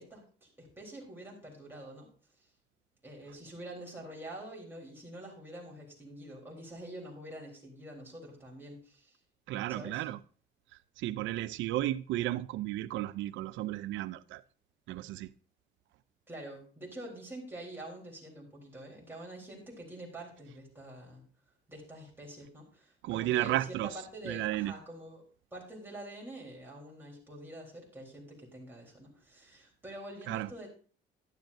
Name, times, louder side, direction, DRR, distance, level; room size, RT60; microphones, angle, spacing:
voice 1, 0.0-2.1 3.0-9.2 9.7-10.0 16.3-21.2 21.7-25.2 25.5-30.7, right 1 dB, 10° right, 3.7 m, -46 dB
voice 2, 9.5-10.2 11.0-14.4 14.9-15.3 23.0-23.9 24.2-24.7 30.3-30.5, right 15 dB, 80° right, 0.5 m, -33 dB
11.5 x 10.5 x 2.7 m
cardioid pair, 115°, 19 cm